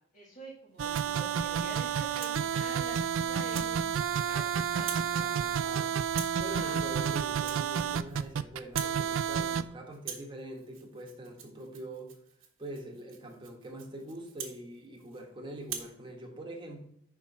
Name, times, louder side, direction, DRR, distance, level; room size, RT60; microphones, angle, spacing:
voice 1, 0.1-2.9 3.2-4.5 4.7-5.0 6.5-7.1, equal, 40° left, -4 dB, 1.6 m, -47 dB
Rattle (instrument), 0.7-1.2 1.7-2.4 2.9-3.1 3.5-3.7 4.0-4.5 4.7-5.1 5.4-5.7 6.1-6.4 6.8-7.0 7.3-8.3 8.6-9.0 9.3-9.7 9.9-15.2 15.6-15.9, right 8 dB, 85° right, 1.5 m, -44 dB
sound 1, 0.8-9.6, right 8 dB, 70° right, 0.4 m, -30 dB
voice 2, 4.9-6.0 6.4-12.2 12.6-16.8, right 1 dB, 25° right, 1 dB, 1.3 m, -44 dB
5.9 x 4.5 x 5.4 m, 0.70 s
head